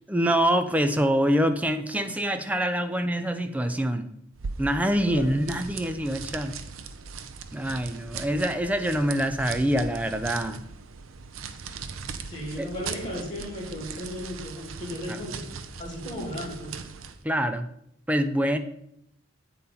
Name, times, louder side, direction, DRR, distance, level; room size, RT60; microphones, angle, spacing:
voice 1, 0.1-4.1 4.6-6.6 7.5-10.6 12.6-12.7 15.1-15.2 17.2-17.7 18.1-18.6, equal, 5° right, 8 dB, 0.5 m, -25 dB
sound 1, 4.3-17.2, right 5 dB, 85° right, 0.6 m, -39 dB
voice 2, 5.0-5.3 12.3-15.5 15.8-16.8, left 1 dB, 25° left, -4 dB, 3.0 m, -35 dB
8.3 x 4.3 x 5.3 m, 0.74 s
head